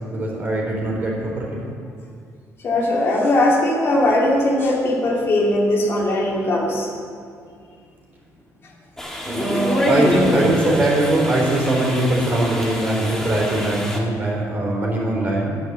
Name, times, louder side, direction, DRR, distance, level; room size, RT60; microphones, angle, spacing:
voice 1, 0.1-1.6 9.2-15.5, right 1 dB, 30° right, -3 dB, 3.6 m, -21 dB
voice 2, 2.6-6.9, left 1 dB, 40° left, -2 dB, 2.3 m, -19 dB
sound 1, 9.0-14.0, equal, 5° left, 1.7 m, -25 dB
10.5 x 10.0 x 7.2 m, 2.2 s
cardioid pair, 145°, 6 cm